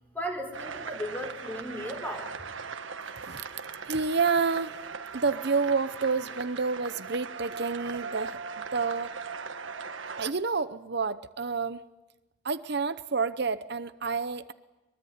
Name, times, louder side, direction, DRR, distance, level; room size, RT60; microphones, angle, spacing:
voice 1, 0.1-2.3, equal, 10° left, 3 dB, 4.6 m, -35 dB
sound 1, 0.5-10.3, right 5 dB, 80° right, 1.6 m, -39 dB
voice 2, 3.9-4.8 5.1-9.1 10.2-11.8 12.4-14.5, right 4 dB, 55° right, 12 dB, 0.8 m, -29 dB
23.5 x 23.0 x 9.5 m, 1.1 s
head